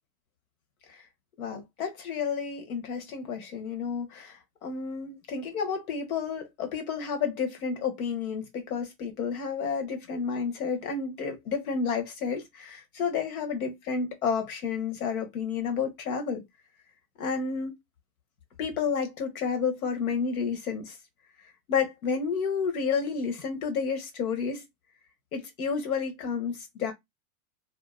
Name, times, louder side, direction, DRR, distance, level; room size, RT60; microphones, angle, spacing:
voice 1, 1.4-16.4 17.2-17.7 18.6-21.0 21.7-24.6 25.3-26.9, left 6 dB, 80° left, 1.3 m, -31 dB
2.8 x 2.5 x 2.4 m
hypercardioid pair, 125°, 43 cm